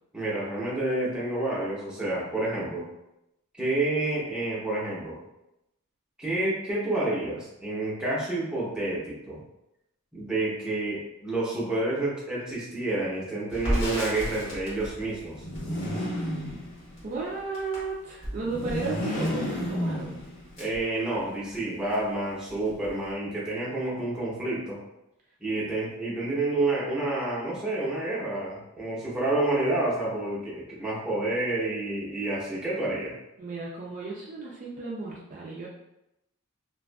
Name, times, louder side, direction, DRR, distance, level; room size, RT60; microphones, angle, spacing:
voice 1, 0.1-2.9 3.6-5.2 6.2-9.4 10.1-15.4 20.6-24.8 25.4-33.2, right 2 dB, 5° right, -8 dB, 0.7 m, -29 dB
Crackle, 13.5-21.6 21.9-22.0 22.3-23.1, equal, 60° left, 1.1 m, -36 dB
sound 1, 15.3-17.0 18.4-20.6, equal, 35° left, 0.6 m, -32 dB
voice 2, 17.0-20.1 33.4-35.7, right 3 dB, 35° right, -4 dB, 0.3 m, -34 dB
2.5 x 2.3 x 2.2 m, 0.88 s
head